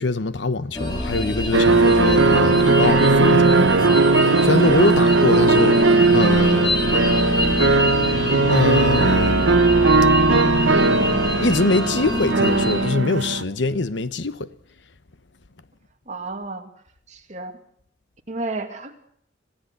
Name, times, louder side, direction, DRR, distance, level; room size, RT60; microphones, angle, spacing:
voice 1, 0.0-3.7 4.2-6.8 8.5-9.5 11.4-14.5, left 3 dB, 70° left, 1.1 m, -23 dB
sound 1, 0.7-12.9, left 1 dB, 25° left, 4.3 m, -26 dB
sound 2, 1.5-13.4, right 3 dB, 90° right, 1.2 m, -17 dB
voice 2, 16.1-16.7 17.1-17.6 18.3-19.0, right 2 dB, 40° right, 2.6 m, -32 dB
26.5 x 17.0 x 8.4 m
head